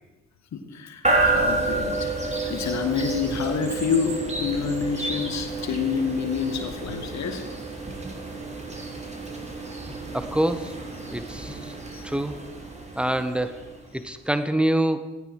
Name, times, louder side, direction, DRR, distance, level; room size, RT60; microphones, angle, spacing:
voice 1, 0.5-7.4 11.9-12.1, left 6 dB, 50° left, 6 dB, 2.1 m, -28 dB
sound 1, 1.0-14.0, right 2 dB, 20° right, 3.7 m, -30 dB
voice 2, 10.1-10.8 11.1-11.7 12.0-12.3 13.0-13.6 13.9-15.1, right 1 dB, 5° right, 11 dB, 1.4 m, -25 dB
17.5 x 14.5 x 4.9 m, 1.1 s
figure-of-eight pair, 40°, 36 cm